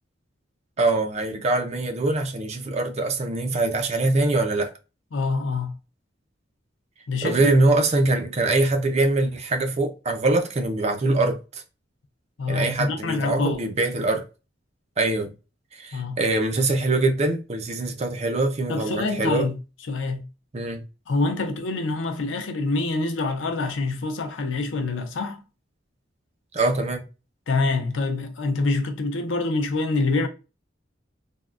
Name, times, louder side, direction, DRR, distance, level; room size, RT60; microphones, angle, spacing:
voice 1, 0.8-4.7 7.2-11.6 12.5-14.2 15.0-15.3 15.7-19.5 20.5-20.8 26.5-27.0, right 2 dB, 35° right, 0.5 m, -23 dB
voice 2, 5.1-5.7 7.1-7.5 12.4-13.6 15.9-16.2 18.7-19.6 19.9-20.2 21.1-25.4 27.5-30.3, left 3 dB, 90° left, 0.6 m, -26 dB
3.5 x 2.2 x 2.4 m
head